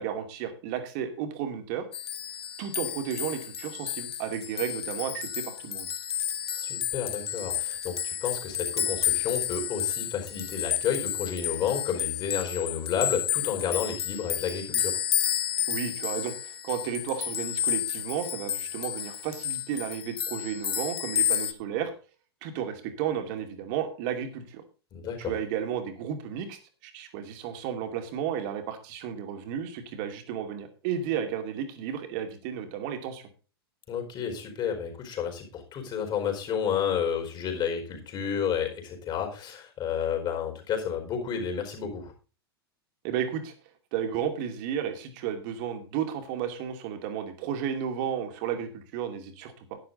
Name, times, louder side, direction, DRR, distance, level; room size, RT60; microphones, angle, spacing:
voice 1, 0.0-1.9 2.6-5.9 15.7-21.9 22.4-24.6 25.2-33.2 43.0-43.5 43.9-49.8, right 8 dB, 50° right, 7 dB, 2.5 m, -33 dB
sound 1, 1.9-21.5, left 10 dB, 70° left, 1.5 m, -31 dB
voice 2, 6.5-15.0 24.9-25.3 33.9-42.1, left 7 dB, 35° left, 4 dB, 4.7 m, -31 dB
11.0 x 10.0 x 4.0 m, 0.34 s
figure-of-eight pair, 95°, 13 cm